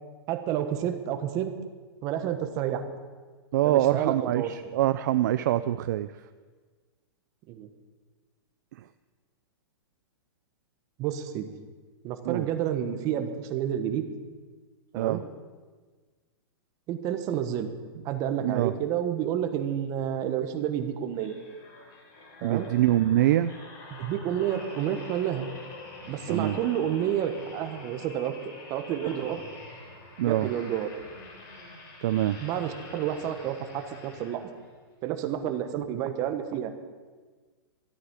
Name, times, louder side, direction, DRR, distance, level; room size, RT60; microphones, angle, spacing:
voice 1, 0.3-1.5 2.0-2.8 3.6-4.5 7.5-7.7 11.0-11.5 12.0-14.0 14.9-15.2 16.9-17.7 18.0-21.3 22.4-22.7 23.9-25.5 26.1-28.4 28.7-29.4 30.2-30.9 32.4-34.4 35.0-36.7, right 10 dB, 25° right, 8 dB, 1.1 m, -30 dB
voice 2, 3.5-6.1 12.3-12.5 15.0-15.2 18.4-18.7 22.4-23.5 26.3-26.6 30.2-30.5 32.0-32.4, right 13 dB, 45° right, 12 dB, 0.4 m, -24 dB
sound 1, 21.1-34.7 35.3-35.5, left 2 dB, 35° left, 3.4 m, -46 dB
13.0 x 8.2 x 9.7 m, 1.4 s
hypercardioid pair, 165°, 13 cm